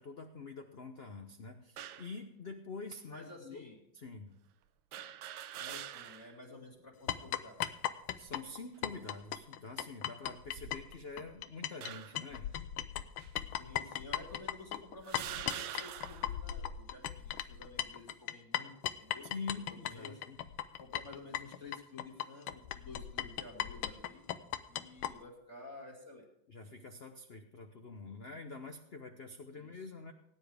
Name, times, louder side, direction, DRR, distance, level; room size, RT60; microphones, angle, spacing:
voice 1, 0.0-3.6 3.9-4.3 8.2-12.6 19.3-20.4 26.5-30.1, left 4 dB, 70° left, 6 dB, 0.5 m, -46 dB
sound 1, 1.8-2.1 3.0-3.1 4.9-6.4 6.8-6.9 8.0-8.5 9.2-9.4 10.4-11.2 11.8-12.3 13.2-13.3 14.2-14.3 15.0-16.4, right 11 dB, 75° right, 1.3 m, -45 dB
voice 2, 3.1-3.8 5.6-7.8 13.6-18.7 19.0-20.2 20.8-24.2 24.7-26.3 29.5-29.7, left 3 dB, 35° left, -1 dB, 2.5 m, -51 dB
sound 2, 7.1-11.9 12.2-25.1, left 11 dB, 90° left, 1.5 m, -38 dB
18.5 x 9.8 x 3.5 m, 0.77 s
omnidirectional pair, 2.3 m